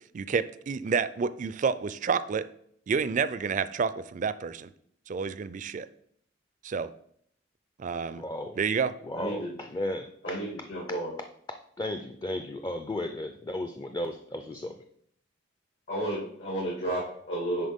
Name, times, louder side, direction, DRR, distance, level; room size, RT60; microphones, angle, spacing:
voice 1, 0.1-2.4 2.9-4.7 5.1-5.9 6.6-6.9 7.8-8.2 8.6-8.9, right 5 dB, 40° right, 14 dB, 0.4 m, -29 dB
voice 2, 8.1-8.6 9.0-10.4 11.8-14.7, left 1 dB, 20° left, 6 dB, 0.4 m, -34 dB
voice 3, 9.1-9.5 10.2-11.1 15.9-17.7, right 1 dB, 75° left, -6 dB, 2.3 m, -32 dB
10.5 x 4.2 x 3.6 m, 0.66 s
head